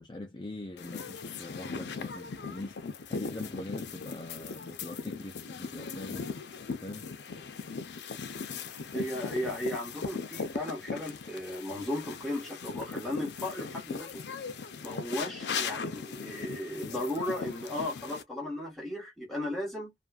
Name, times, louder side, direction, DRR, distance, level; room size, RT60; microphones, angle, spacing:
voice 1, 0.0-6.3 6.8-7.1, left 2 dB, 25° left, 0.4 m, -42 dB
sound 1, 0.8-18.2, left 5 dB, 80° left, 0.5 m, -39 dB
voice 2, 8.9-14.3 14.8-19.9, left 1 dB, ahead, 1.3 m, -35 dB
2.5 x 2.4 x 2.3 m
head